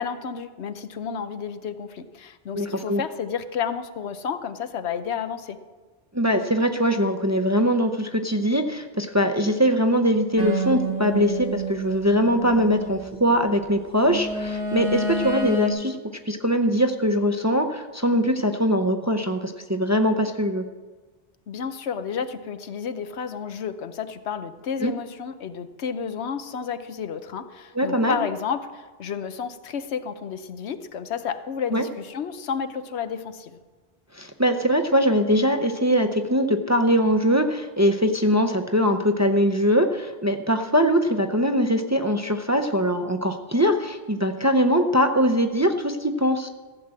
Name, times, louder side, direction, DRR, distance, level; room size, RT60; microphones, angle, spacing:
voice 1, 0.0-5.6 21.5-33.6, left 7 dB, 90° left, 11 dB, 1.1 m, -31 dB
voice 2, 2.5-3.0 6.1-16.0 16.3-20.6 24.8-24.9 27.7-28.2 31.7-31.8 34.2-46.5, equal, 20° right, 5 dB, 0.5 m, -22 dB
sound 1, 10.4-13.3 14.0-15.7, right 1 dB, 65° right, 1.9 m, -29 dB
14.5 x 7.4 x 7.6 m, 1.3 s
omnidirectional pair, 1.1 m